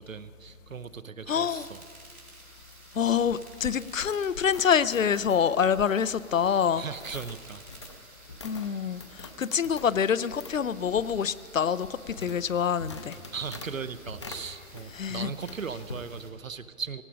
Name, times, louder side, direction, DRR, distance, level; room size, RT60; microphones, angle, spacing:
voice 1, 0.0-1.8 6.8-7.9 13.3-17.0, right 6 dB, 65° right, 0.9 m, -38 dB
voice 2, 1.3-1.7 2.9-6.8 8.4-13.2 14.9-15.3, left 7 dB, 65° left, 0.6 m, -26 dB
sound 1, 1.3-16.3, right 2 dB, 90° right, 4.5 m, -53 dB
sound 2, 2.7-15.1 15.4-16.1, left 2 dB, 20° left, 0.6 m, -46 dB
18.0 x 16.0 x 5.0 m
figure-of-eight pair, 135°, 42 cm